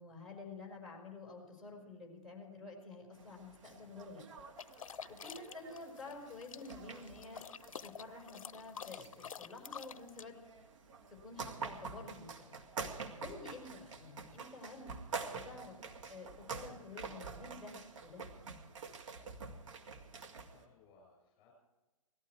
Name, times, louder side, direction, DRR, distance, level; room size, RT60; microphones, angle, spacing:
voice 1, 0.0-4.2 5.1-7.4 7.8-10.4 11.2-12.6 13.2-14.9 15.3-15.8 16.1-18.2, left 3 dB, ahead, -1 dB, 5.4 m, -50 dB
sound 1, 3.1-20.6, right 4 dB, 60° right, 2.1 m, -48 dB
sound 2, 4.6-10.2, left 7 dB, 65° left, 0.6 m, -49 dB
voice 2, 20.3-21.5, left 4 dB, 30° left, -1 dB, 6.8 m, -66 dB
18.5 x 15.0 x 4.7 m, 1.1 s
figure-of-eight pair, 125°, 18 cm